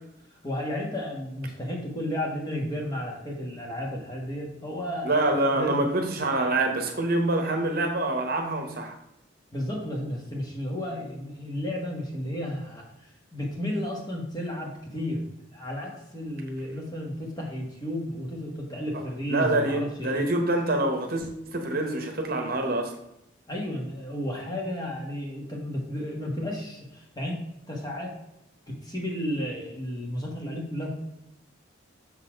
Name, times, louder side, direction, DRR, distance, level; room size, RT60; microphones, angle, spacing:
voice 1, 0.4-5.2 5.5-5.8 9.5-15.2 15.5-20.2 23.5-28.1 28.7-31.0, left 1 dB, 20° left, -1 dB, 1.3 m, -33 dB
voice 2, 5.0-8.9 19.3-22.9, right 2 dB, 50° right, 4 dB, 0.9 m, -26 dB
6.1 x 4.1 x 5.0 m, 0.83 s
head